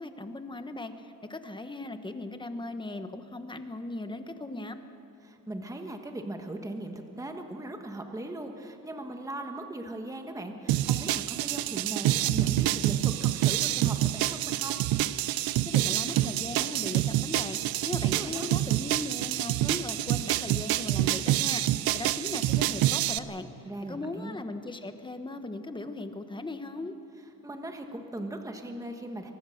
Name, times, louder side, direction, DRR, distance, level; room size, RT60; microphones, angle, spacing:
voice 1, 0.0-4.8 15.6-17.6 17.8-21.6 21.9-23.5 23.8-26.9, left 2 dB, 15° left, 8 dB, 1.2 m, -38 dB
voice 2, 5.2-14.8 18.0-18.5 23.6-24.4 27.4-29.3, right 1 dB, 10° right, 4 dB, 1.4 m, -39 dB
sound 1, 10.7-23.2, right 14 dB, 90° right, 0.7 m, -27 dB
24.0 x 19.5 x 6.6 m, 2.9 s
cardioid pair, 130°, 35 cm